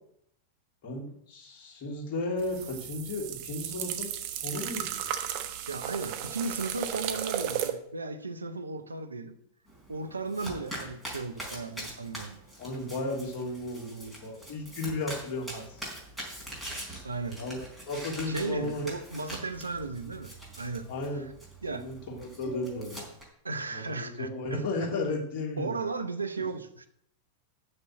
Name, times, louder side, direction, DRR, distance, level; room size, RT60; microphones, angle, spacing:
voice 1, 0.8-4.1 4.4-5.1 12.6-15.9 17.4-17.6 17.9-18.8 20.9-21.3 21.7-23.0 23.7-25.8, left 2 dB, 40° left, -2 dB, 3.1 m, -34 dB
sound 1, 2.4-7.7, right 11 dB, 45° right, 1.0 m, -34 dB
voice 2, 5.7-9.4 9.9-12.4 17.0-17.4 18.3-20.3 20.6-20.9 21.1-21.2 21.6-21.8 23.4-24.7 25.6-26.9, right 3 dB, 80° right, 9 dB, 0.8 m, -35 dB
Domestic sounds home sounds, 9.7-23.2, right 1 dB, ahead, 4.4 m, -43 dB
7.3 x 6.6 x 7.8 m, 0.71 s
figure-of-eight pair, 90°, 0 cm